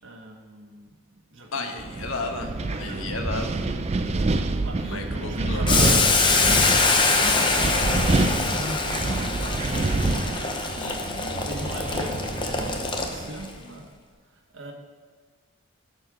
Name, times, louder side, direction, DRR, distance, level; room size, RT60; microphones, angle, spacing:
voice 1, 0.0-1.9 4.6-9.9 10.2-10.6 11.1-13.9 14.2-14.7, right 1 dB, 65° right, 1 dB, 1.4 m, -40 dB
voice 2, 1.5-3.6 4.8-6.0 10.8-11.2, left 3 dB, 80° left, 4 dB, 1.1 m, -33 dB
Wind, 1.8-13.3, right 2 dB, 30° right, 0.4 m, -27 dB
sound 1, 3.2-3.8 5.5-6.1 7.9-8.4, equal, ahead, 2.0 m, -35 dB
Boiling, 5.7-13.5, left 3 dB, 25° left, 0.7 m, -24 dB
11.5 x 4.5 x 6.3 m, 1.5 s
head